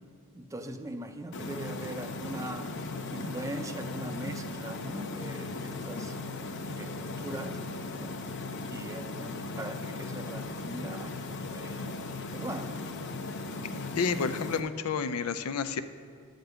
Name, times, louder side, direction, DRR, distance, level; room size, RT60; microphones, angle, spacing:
voice 1, 0.3-2.7 3.1-6.2 6.7-7.6 7.9-11.2 11.5-12.0 12.3-12.7, right 1 dB, 15° right, 7 dB, 0.5 m, -41 dB
sound 1, 1.3-14.6, left 2 dB, 60° left, 0.8 m, -37 dB
voice 2, 14.0-15.8, left 5 dB, 90° left, 11 dB, 0.5 m, -30 dB
11.5 x 5.2 x 7.9 m, 2.1 s
head